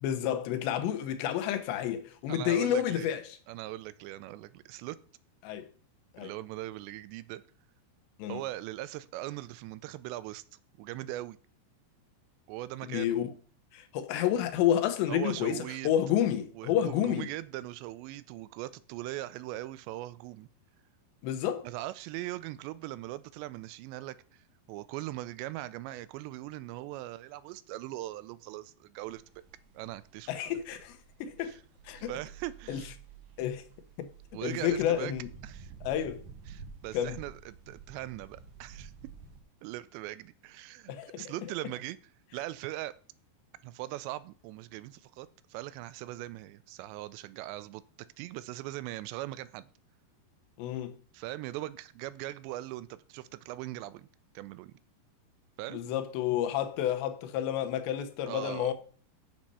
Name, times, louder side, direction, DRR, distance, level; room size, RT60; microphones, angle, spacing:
voice 1, 0.0-3.2 5.4-5.7 6.1-6.3 8.2-8.4 12.8-13.3 13.7-17.3 21.2-21.7 30.3-31.6 31.9-32.1 32.7-32.8 33.4-33.6 34.0-34.1 34.4-35.3 35.8-36.2 36.9-37.2 40.9-41.3 50.6-50.9 55.7-58.7, left 10 dB, 80° left, 3.1 m, -30 dB
voice 2, 2.3-3.1 3.5-5.0 6.2-7.4 8.3-10.4 10.8-11.4 12.5-13.2 15.1-15.9 16.6-20.5 21.6-29.2 29.7-30.6 31.4-31.6 32.1-32.9 34.3-35.1 35.4-35.7 36.5-38.9 39.6-42.0 42.3-42.9 43.6-47.8 48.2-49.7 51.1-54.1 54.4-54.7 55.6-55.8 58.3-58.7, right 16 dB, 85° right, 2.8 m, -40 dB
sound 1, 29.0-39.4, right 6 dB, 65° right, 2.4 m, -51 dB
7.6 x 7.4 x 5.4 m
omnidirectional pair, 5.0 m